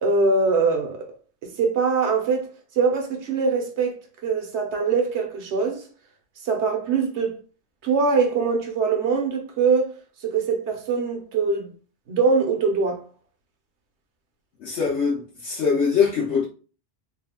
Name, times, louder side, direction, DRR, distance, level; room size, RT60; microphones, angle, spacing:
voice 1, 0.0-1.1 1.4-2.5 2.8-5.8 6.4-7.4 7.8-9.9 10.2-11.7 12.1-13.0, right 4 dB, 80° right, 1.0 m, -23 dB
voice 2, 14.6-16.4, left 6 dB, 85° left, 1.2 m, -22 dB
3.3 x 2.0 x 3.6 m
omnidirectional pair, 1.1 m